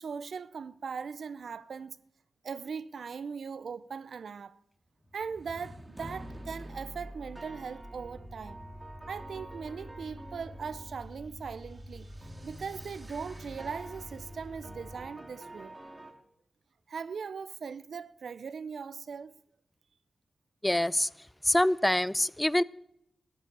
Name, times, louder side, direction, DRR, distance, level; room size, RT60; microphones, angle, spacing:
voice 1, 0.0-2.0 2.4-4.6 5.1-8.6 9.1-15.8 16.9-19.3, right 6 dB, 80° right, 0.5 m, -40 dB
sound 1, 5.0-16.1, right 1 dB, 25° right, 2.2 m, -47 dB
sound 2, 7.8-15.1, equal, 10° right, 2.4 m, -48 dB
voice 2, 20.6-21.1 21.4-22.6, left 1 dB, 10° left, 0.4 m, -25 dB
14.0 x 8.3 x 8.2 m
cardioid pair, 75°, 0 cm